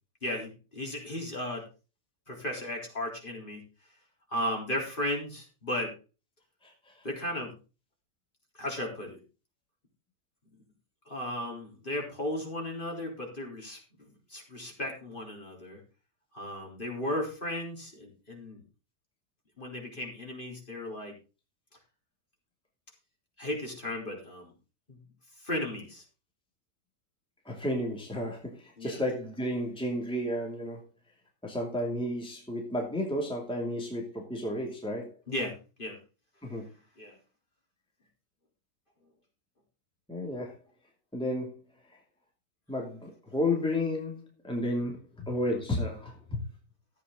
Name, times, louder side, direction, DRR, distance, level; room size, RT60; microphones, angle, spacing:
voice 1, 0.2-1.6 2.3-3.6 4.3-5.9 7.0-7.5 8.6-9.2 11.1-15.8 16.3-18.6 19.6-21.1 23.4-24.5 24.9-25.0 25.4-26.0 28.8-29.0 35.3-36.0 37.0-37.2, left 1 dB, 30° left, 0 dB, 4.0 m, -35 dB
voice 2, 6.6-7.1 27.4-30.8 31.4-35.2 36.4-36.7 40.1-40.6 41.1-41.6 41.9-42.0 42.7-46.4, left 1 dB, 5° left, 0 dB, 2.6 m, -32 dB
14.5 x 8.4 x 3.8 m, 0.32 s
omnidirectional pair, 1.7 m